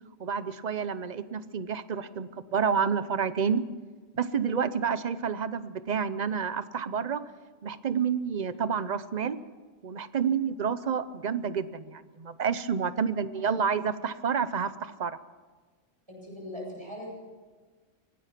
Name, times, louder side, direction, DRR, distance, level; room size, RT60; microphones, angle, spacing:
voice 1, 0.2-3.7 4.2-7.3 7.6-9.4 9.8-15.2, right 6 dB, 40° right, 14 dB, 0.8 m, -29 dB
voice 2, 13.0-13.4 16.1-17.1, left 1 dB, 20° right, -3 dB, 7.8 m, -41 dB
24.5 x 18.0 x 6.0 m, 1.4 s
omnidirectional pair, 1.3 m